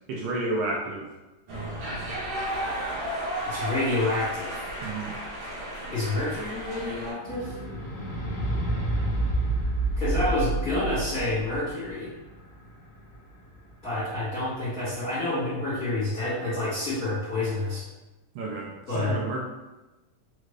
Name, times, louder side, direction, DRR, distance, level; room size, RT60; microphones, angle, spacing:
voice 1, 0.1-1.1 4.8-5.1 18.4-19.4, right 2 dB, 75° right, -2 dB, 1.7 m, -31 dB
sound 1, 1.5-7.1, right 1 dB, 60° right, 1.4 m, -33 dB
voice 2, 3.4-4.6 5.9-7.6 10.0-12.1 13.8-17.8 18.9-19.2, left 2 dB, 50° left, -11 dB, 1.1 m, -28 dB
sound 2, 7.2-13.7 14.5-14.6, right 2 dB, 80° left, 0.7 m, -29 dB
5.1 x 2.5 x 3.1 m, 1.1 s
omnidirectional pair, 3.4 m